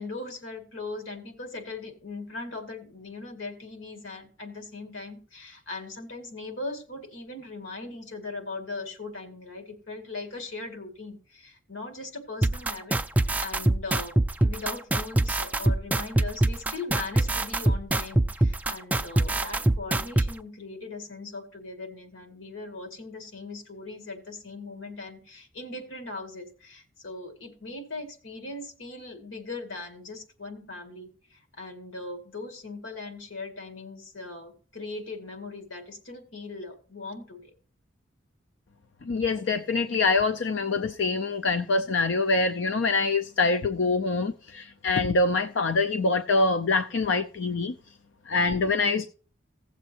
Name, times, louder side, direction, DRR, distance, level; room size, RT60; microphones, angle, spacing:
voice 1, 0.0-14.1 14.4-37.5, left 3 dB, 85° left, 2.2 m, -39 dB
sound 1, 12.4-20.3, right 1 dB, 10° right, 0.3 m, -23 dB
voice 2, 39.0-47.7 48.3-49.1, left 3 dB, 65° left, 0.5 m, -25 dB
17.0 x 7.3 x 2.9 m
head